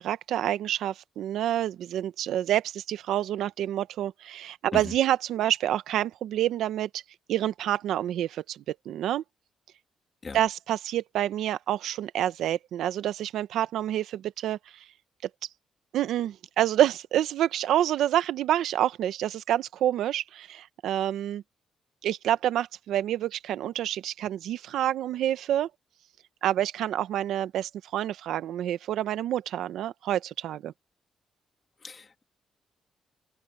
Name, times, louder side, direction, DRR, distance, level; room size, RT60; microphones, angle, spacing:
voice 1, 0.0-7.0 7.3-9.2 10.3-14.8 15.2-15.3 15.9-21.4 22.0-25.7 26.4-30.7, right 12 dB, 80° right, 0.9 m, -28 dB
voice 2, 31.8-32.2, left 4 dB, 35° left, 2.7 m, -37 dB
cardioid pair, 75°, 0 cm